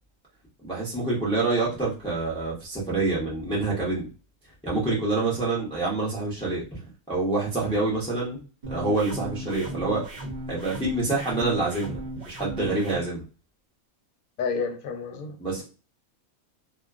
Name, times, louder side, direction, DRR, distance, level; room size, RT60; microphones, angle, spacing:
voice 1, 0.6-4.1 4.6-6.8 7.1-8.4 8.7-10.1 10.5-12.0 12.3-13.2 15.4-15.6, right 3 dB, 5° left, -5 dB, 0.4 m, -26 dB
sound 1, 8.6-13.0, right 1 dB, 55° right, 0.5 m, -36 dB
voice 2, 14.4-15.6, left 5 dB, 80° left, 4 dB, 1.0 m, -31 dB
2.4 x 2.2 x 2.3 m, 0.34 s
omnidirectional pair, 1.5 m